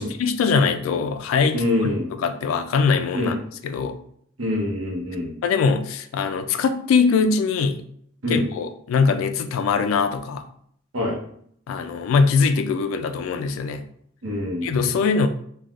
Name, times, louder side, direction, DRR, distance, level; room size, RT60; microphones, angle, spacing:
voice 1, 0.0-3.4 3.6-4.0 5.4-7.8 8.3-10.5 11.7-13.8 14.6-15.3, left 5 dB, 85° left, 9 dB, 0.3 m, -22 dB
voice 2, 1.5-2.1 3.1-3.3 4.4-5.3 8.2-8.4 10.9-11.2 14.2-14.9, left 1 dB, 85° right, -1 dB, 0.8 m, -25 dB
3.2 x 2.2 x 2.4 m, 0.66 s
head